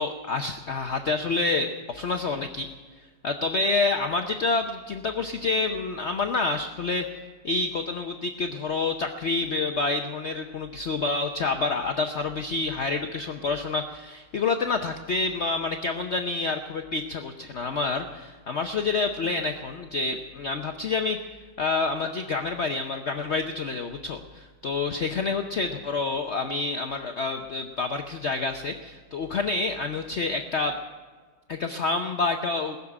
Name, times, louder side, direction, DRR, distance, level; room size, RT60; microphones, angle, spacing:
voice 1, 0.0-2.7 3.2-7.1 7.4-21.2 21.6-30.8 31.5-32.8, left 3 dB, 50° left, 6 dB, 0.9 m, -28 dB
19.5 x 7.3 x 9.9 m, 1.5 s
omnidirectional pair, 1.9 m